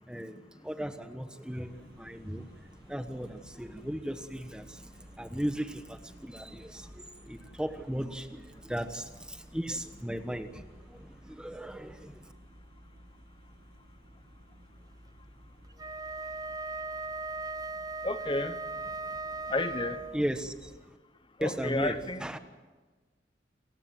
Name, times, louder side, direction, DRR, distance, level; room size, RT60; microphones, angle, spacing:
voice 1, 0.1-12.3 20.1-20.7 21.4-22.4, equal, 5° right, 1.2 m, -37 dB
sound 1, 1.5-20.8, equal, 60° right, 2.3 m, -55 dB
Wind instrument woodwind instrument, 15.7-20.4, right 3 dB, 20° right, 0.6 m, -38 dB
voice 2, 18.0-18.6 19.5-20.0 21.4-22.4, left 2 dB, 25° left, 1.1 m, -31 dB
28.5 x 15.5 x 7.7 m
head